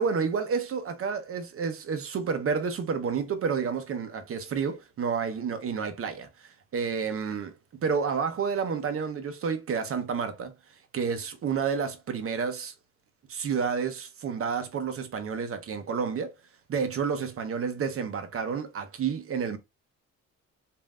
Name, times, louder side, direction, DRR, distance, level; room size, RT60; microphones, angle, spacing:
voice 1, 0.0-7.5 7.8-10.5 10.9-12.7 13.3-16.3 16.7-19.6, right 6 dB, 50° right, 0.8 m, -30 dB
3.1 x 2.7 x 2.3 m
cardioid pair, 90°, 30 cm